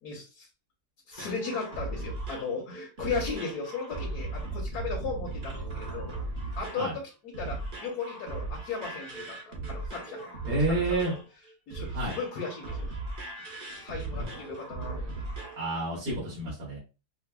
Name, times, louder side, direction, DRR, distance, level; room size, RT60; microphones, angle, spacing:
voice 1, 0.0-0.5 1.1-6.1 6.6-10.3 10.7-11.1 11.7-13.0 13.8-15.2, left 5 dB, 70° left, 0 dB, 1.3 m, -36 dB
sound 1, 1.1-15.7 16.1-16.2, right 2 dB, 45° right, 0.7 m, -37 dB
voice 2, 10.5-11.1 11.9-12.2 15.6-16.8, right 2 dB, 75° right, -8 dB, 2.0 m, -29 dB
4.9 x 2.1 x 2.2 m, 0.32 s
omnidirectional pair, 1.7 m